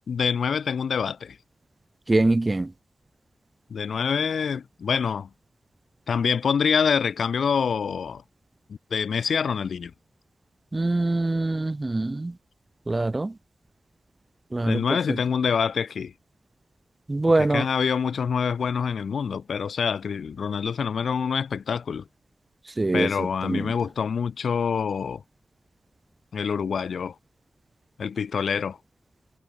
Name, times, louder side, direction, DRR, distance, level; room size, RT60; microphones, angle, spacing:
voice 1, 0.1-1.4 3.7-5.3 6.1-8.2 8.7-9.9 14.7-16.1 17.4-22.0 22.9-25.2 26.3-27.1 28.0-28.8, left 6 dB, 75° left, 5.0 m, -26 dB
voice 2, 2.1-2.7 10.7-12.3 12.9-13.3 14.5-14.8 17.1-17.7 22.8-23.7, right 2 dB, 20° right, 1.0 m, -24 dB
wide cardioid pair, 115°, 0 cm